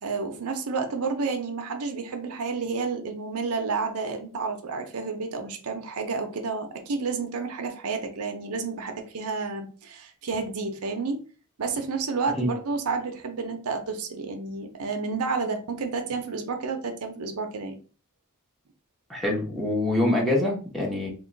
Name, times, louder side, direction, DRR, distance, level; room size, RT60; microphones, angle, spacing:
voice 1, 0.0-11.2 11.6-17.8, right 4 dB, 70° right, 5 dB, 0.6 m, -30 dB
voice 2, 19.1-21.1, left 1 dB, ahead, -2 dB, 0.8 m, -25 dB
3.0 x 2.2 x 3.7 m, 0.37 s
head